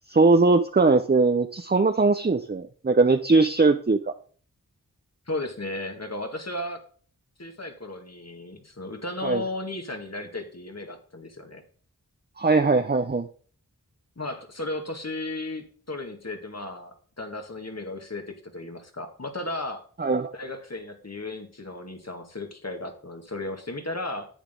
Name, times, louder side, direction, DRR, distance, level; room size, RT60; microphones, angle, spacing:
voice 1, 0.0-4.0 9.2-9.4 12.4-13.3 20.0-20.3, right 3 dB, 30° right, 7 dB, 0.7 m, -20 dB
voice 2, 5.3-6.8 7.4-11.6 14.2-19.8 20.3-24.3, left 2 dB, 50° left, 5 dB, 2.1 m, -35 dB
10.0 x 8.9 x 3.8 m, 0.43 s
wide cardioid pair, 45°, 33 cm